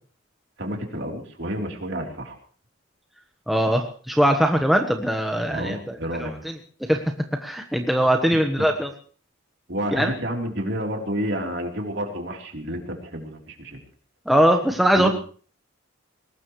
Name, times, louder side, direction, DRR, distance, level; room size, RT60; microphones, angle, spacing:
voice 1, 0.6-2.4 5.5-6.3 8.6-8.7 9.7-13.8 15.0-15.1, equal, 55° right, 2 dB, 3.6 m, -30 dB
voice 2, 3.5-6.3 6.9-7.1 7.4-8.9 9.9-10.1 14.3-15.1, equal, ahead, 3 dB, 1.2 m, -21 dB
21.5 x 19.5 x 3.2 m, 0.42 s
head